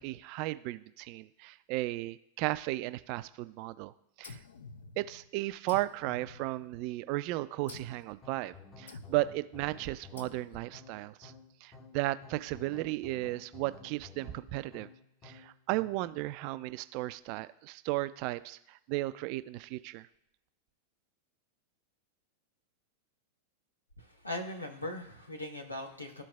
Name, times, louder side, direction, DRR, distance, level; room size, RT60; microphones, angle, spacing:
voice 1, 0.0-3.9 4.2-4.4 5.0-11.3 11.6-14.9 15.2-20.1, right 18 dB, 45° right, 14 dB, 0.3 m, -35 dB
sound 1, 4.2-5.3 5.7-7.0 7.7-8.1 8.9-9.4 10.2-10.8, left 4 dB, 65° left, 0.4 m, -50 dB
sound 2, 8.2-16.1, left 4 dB, 25° left, 0.8 m, -53 dB
voice 2, 24.0-26.2, left 1 dB, 85° left, 2 dB, 1.1 m, -40 dB
13.0 x 4.5 x 2.3 m, 0.74 s
figure-of-eight pair, 90°, 0 cm